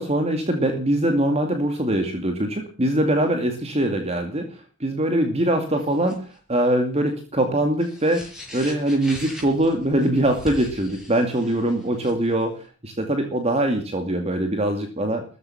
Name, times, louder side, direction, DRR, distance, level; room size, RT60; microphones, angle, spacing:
voice 1, 0.0-8.2 8.5-12.5 12.8-15.2, right 1 dB, 30° right, 5 dB, 2.3 m, -22 dB
sound 1, 5.8-6.4 7.7-12.4, left 1 dB, 5° right, 6.6 m, -40 dB
14.5 x 13.5 x 7.1 m, 0.40 s
head